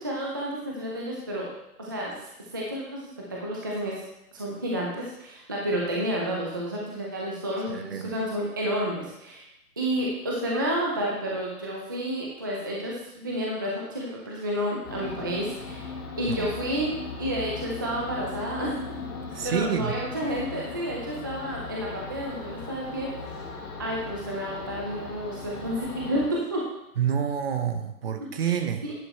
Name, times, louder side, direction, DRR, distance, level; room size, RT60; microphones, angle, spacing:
voice 1, 0.0-1.5 1.8-3.9 4.3-9.4 9.8-15.9 16.2-18.8 19.4-23.1 23.8-26.6 28.2-28.5 28.8-28.9, equal, 15° right, -3 dB, 0.5 m, -30 dB
voice 2, 7.7-8.2 16.3-16.5 19.3-20.0 27.0-28.9, right 8 dB, 40° right, 9 dB, 0.8 m, -28 dB
sound 1, 14.8-26.3, left 4 dB, 15° left, 0.8 m, -38 dB
10.0 x 6.6 x 4.1 m, 0.85 s
hypercardioid pair, 155°, 46 cm